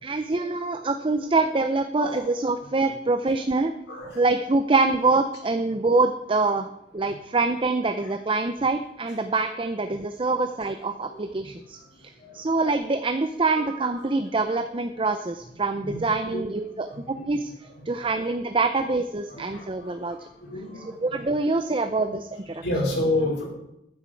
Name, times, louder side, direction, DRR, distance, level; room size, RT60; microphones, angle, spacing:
voice 1, 0.0-3.7 4.2-11.8 12.3-16.9 17.3-17.5 17.9-20.2 20.8-22.6, right 3 dB, 30° right, 8 dB, 0.6 m, -25 dB
voice 2, 19.3-19.6 20.4-20.8 22.6-23.4, left 1 dB, 75° left, -2 dB, 5.0 m, -28 dB
14.0 x 10.0 x 4.6 m, 0.84 s
head